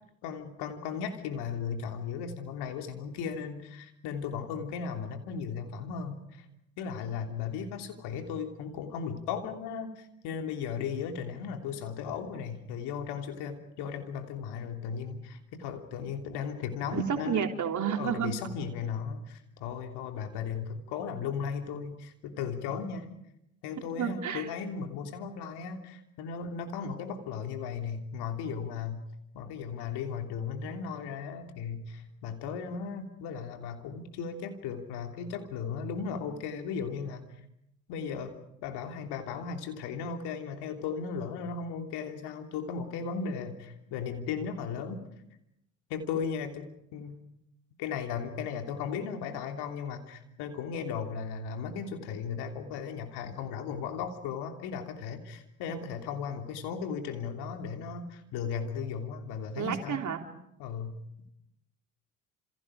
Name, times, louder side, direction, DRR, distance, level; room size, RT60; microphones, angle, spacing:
voice 1, 0.2-6.4 6.8-17.5 18.0-23.1 23.6-29.0 29.3-37.2 37.9-38.3 38.6-45.1 45.9-47.2 47.8-60.0 60.6-61.0, left 6 dB, 65° left, 5 dB, 3.3 m, -36 dB
voice 2, 16.9-18.4 24.0-24.5 55.7-55.8 59.6-60.2, right 8 dB, 40° right, 4 dB, 3.6 m, -31 dB
29.5 x 28.0 x 5.1 m, 0.81 s
hypercardioid pair, 60°, 43 cm